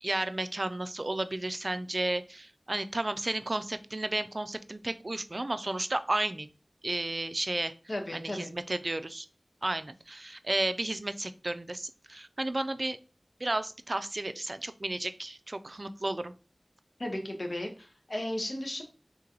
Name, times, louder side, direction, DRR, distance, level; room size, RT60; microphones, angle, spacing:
voice 1, 0.0-6.5 6.8-7.7 8.1-9.3 9.6-13.0 13.4-16.3, right 2 dB, 55° right, 11 dB, 0.3 m, -33 dB
voice 2, 7.9-8.5 17.0-18.8, left 1 dB, 70° left, 3 dB, 1.0 m, -35 dB
3.8 x 2.9 x 3.7 m, 0.34 s
wide cardioid pair, 45°, 0 cm